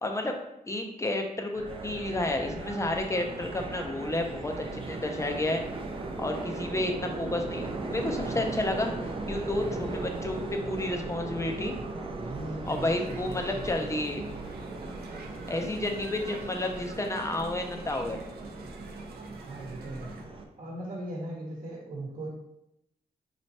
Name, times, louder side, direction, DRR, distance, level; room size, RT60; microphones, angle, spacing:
voice 1, 0.0-0.4 0.7-5.6 6.2-8.9 9.3-11.7 12.7-14.2 15.5-18.2, left 2 dB, 20° left, 4 dB, 0.5 m, -31 dB
sound 1, 1.5-20.4, right 3 dB, 35° right, 0.5 m, -37 dB
voice 2, 12.1-13.7 19.4-20.2 20.6-22.3, right 1 dB, 55° right, -4 dB, 1.0 m, -39 dB
Targowek-Plac-zabaw, 12.6-20.2, right 4 dB, 85° right, 0.6 m, -49 dB
4.2 x 3.2 x 2.8 m, 0.83 s
cardioid pair, 105°, 16 cm